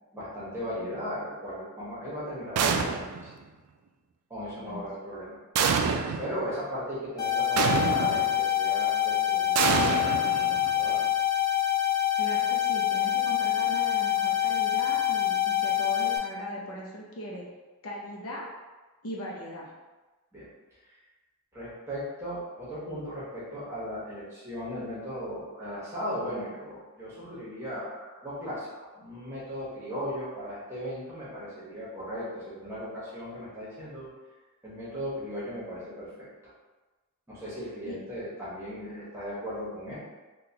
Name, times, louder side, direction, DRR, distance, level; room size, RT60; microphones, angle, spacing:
voice 1, 0.1-3.4 4.3-5.9 6.2-11.0 20.3-20.5 21.5-34.1 34.6-36.3 37.3-40.0, equal, 10° right, -9 dB, 1.1 m, -37 dB
sound 1, 2.6-3.3 5.6-6.3 7.6-8.3 9.6-10.8, right 6 dB, 80° right, 0.3 m, -26 dB
sound 2, 7.2-16.2, left 11 dB, 15° left, 0.4 m, -26 dB
voice 2, 12.2-17.4 17.8-18.5 19.0-19.7 37.9-38.0, equal, 75° left, -3 dB, 0.7 m, -39 dB
3.8 x 2.3 x 2.8 m, 1.2 s
head